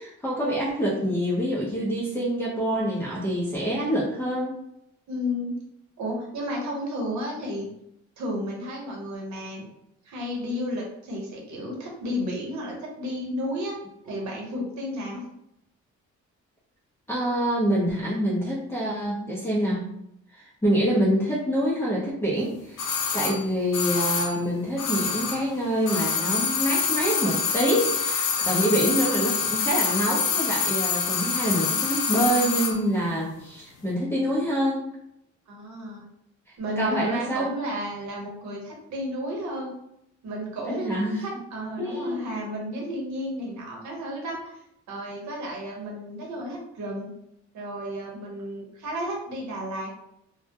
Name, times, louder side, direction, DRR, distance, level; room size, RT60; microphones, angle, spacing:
voice 1, 0.0-4.5 17.1-19.8 20.3-22.9 23.1-34.9 36.8-37.5 40.6-41.2 41.8-42.3, equal, 10° left, -8 dB, 0.6 m, -26 dB
voice 2, 5.1-5.6 6.0-7.7 8.2-9.7 10.0-13.8 14.0-15.2 35.5-36.0 36.6-39.7 40.2-44.6 44.9-47.1 47.5-49.9, equal, 65° right, -1 dB, 0.9 m, -32 dB
sound 1, 22.8-25.5 25.8-32.8 33.1-33.2, left 6 dB, 90° left, 0.6 m, -26 dB
2.2 x 2.1 x 2.8 m, 0.77 s
cardioid pair, 90°, 30 cm